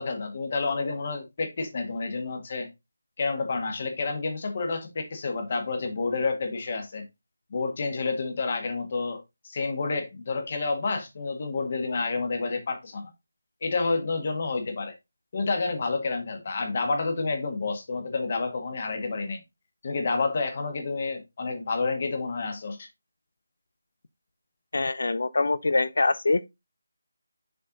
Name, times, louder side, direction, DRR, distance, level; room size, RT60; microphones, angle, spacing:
voice 1, 0.0-2.7 3.2-7.1 7.5-13.1 13.6-14.9 15.3-19.4 19.8-22.9, left 3 dB, 35° left, 1.6 m, -29 dB
voice 2, 24.7-26.4, left 3 dB, 70° left, 0.6 m, -24 dB
6.7 x 4.5 x 3.9 m
figure-of-eight pair, 170°, 0 cm